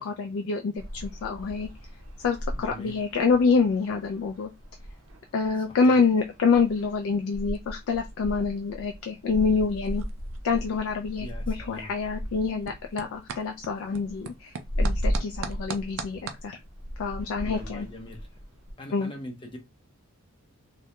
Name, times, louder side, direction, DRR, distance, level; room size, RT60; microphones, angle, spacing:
voice 1, 0.0-1.7 2.2-4.5 5.3-10.0 10.4-16.6 17.0-17.9 18.9-19.1, left 4 dB, 65° left, 0.3 m, -26 dB
sound 1, 0.8-18.7, equal, 85° right, 0.7 m, -36 dB
voice 2, 2.5-3.0 5.7-5.9 11.2-11.9 17.4-18.3 18.8-19.6, left 1 dB, 25° left, 0.6 m, -41 dB
sound 2, 3.8-16.4, right 6 dB, 65° right, 0.4 m, -45 dB
2.2 x 2.0 x 2.8 m
head